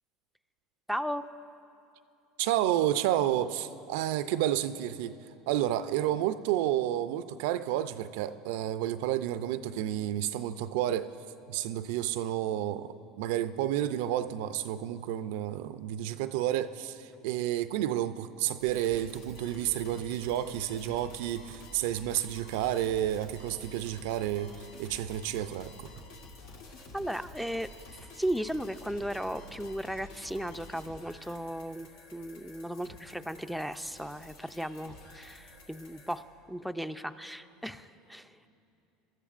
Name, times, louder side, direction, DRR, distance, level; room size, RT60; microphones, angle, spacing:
voice 1, 0.9-1.2 26.9-38.5, equal, ahead, 12 dB, 0.4 m, -36 dB
voice 2, 2.4-5.2 5.5-11.1 11.5-25.9, right 12 dB, 75° right, 13 dB, 0.4 m, -30 dB
sound 1, 18.6-36.2, left 2 dB, 75° left, 1.3 m, -50 dB
21.5 x 13.0 x 2.5 m, 2.8 s
supercardioid pair, 95°, 0 cm